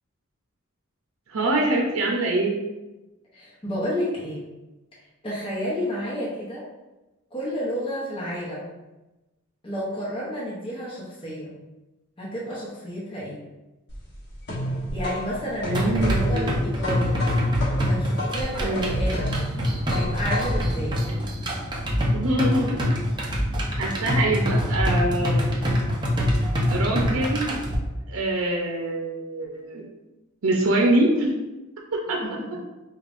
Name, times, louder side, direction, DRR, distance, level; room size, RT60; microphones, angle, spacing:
voice 1, 1.3-2.6 15.6-16.7 18.6-19.0 22.1-22.9 23.8-25.5 26.7-27.6 28.1-29.8 30.4-31.3 31.9-32.2, right 1 dB, 80° right, 0 dB, 0.6 m, -24 dB
voice 2, 3.3-4.5 5.2-6.6 7.3-8.7 9.6-11.5 12.2-13.4 14.9-17.2 17.8-19.4 19.9-21.0 32.2-32.5, equal, 25° left, -7 dB, 0.8 m, -31 dB
sound 1, 13.9-20.7, equal, 55° left, 1.0 m, -31 dB
sound 2, 15.7-27.7, equal, 20° right, 0.5 m, -25 dB
5.2 x 2.3 x 2.5 m, 1.1 s
head